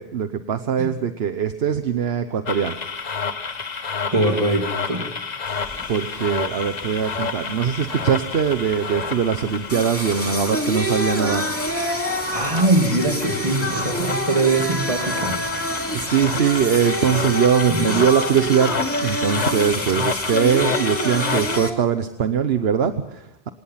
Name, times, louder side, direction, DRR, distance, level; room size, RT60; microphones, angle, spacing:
voice 1, 0.0-2.8 5.9-11.5 15.9-18.8 19.0-23.5, right 7 dB, 75° right, 9 dB, 1.2 m, -21 dB
sound 1, 2.5-21.6, left 5 dB, 45° left, 1.0 m, -30 dB
voice 2, 4.1-5.0 12.3-15.4 17.7-18.0, right 2 dB, 35° right, 4 dB, 2.7 m, -22 dB
Singing, 5.5-21.7, equal, 15° left, 2.3 m, -27 dB
26.0 x 19.0 x 5.8 m, 0.84 s
omnidirectional pair, 1.1 m